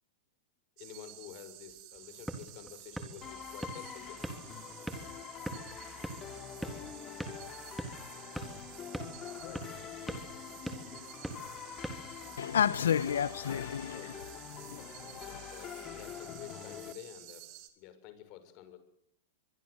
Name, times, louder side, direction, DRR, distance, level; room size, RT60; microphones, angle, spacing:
voice 1, 0.8-4.4 9.4-9.7 13.9-14.2 15.1-18.8, left 11 dB, 45° left, 6.6 m, -50 dB
sound 1, 0.8-17.7, right 14 dB, 50° right, 4.7 m, -52 dB
sound 2, 1.9-12.7, right 1 dB, 5° right, 3.8 m, -44 dB
sound 3, 3.2-16.9, left 9 dB, 30° left, 3.3 m, -46 dB
voice 2, 12.4-14.0 14.7-15.4, left 8 dB, 85° left, 1.3 m, -31 dB
24.0 x 23.5 x 8.3 m
hypercardioid pair, 125°, 0 cm